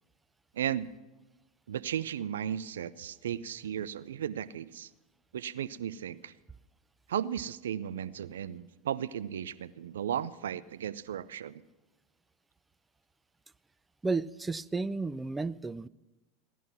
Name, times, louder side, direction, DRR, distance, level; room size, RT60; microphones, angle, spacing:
voice 1, 0.5-0.9 1.7-4.9 5.3-6.3 7.1-11.6, right 9 dB, 75° right, 15 dB, 0.5 m, -35 dB
voice 2, 14.0-15.9, right 3 dB, 15° right, 17 dB, 0.4 m, -32 dB
16.5 x 11.0 x 6.0 m, 1.1 s
hypercardioid pair, 85°, 0 cm